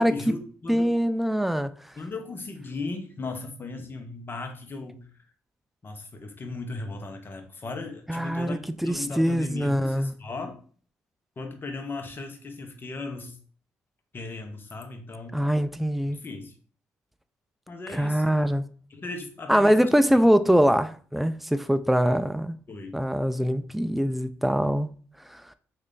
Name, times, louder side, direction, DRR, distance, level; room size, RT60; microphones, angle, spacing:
voice 1, 0.0-0.9 2.0-5.2 5.8-10.6 11.4-13.4 14.1-15.4 16.1-16.6 17.7-18.5 18.9-20.2 22.7-23.0, left 3 dB, 40° left, 0.8 m, -37 dB
voice 2, 0.7-1.7 8.1-10.1 15.3-16.2 17.9-18.6 19.5-22.6 22.9-24.9 25.3-25.4, equal, ahead, 0.3 m, -23 dB
3.2 x 2.4 x 3.8 m
supercardioid pair, 55°, 6 cm